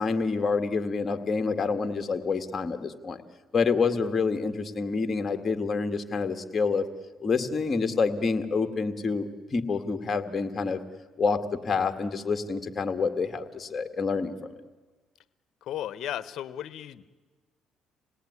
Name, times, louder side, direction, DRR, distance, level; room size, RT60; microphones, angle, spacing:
voice 1, 0.0-3.2 3.5-6.8 7.2-10.8 11.2-14.6, left 4 dB, 35° left, 7 dB, 2.0 m, -27 dB
voice 2, 15.6-17.1, left 11 dB, 65° left, 16 dB, 1.1 m, -35 dB
27.0 x 18.5 x 9.7 m, 1.3 s
cardioid pair, 90°, 0 cm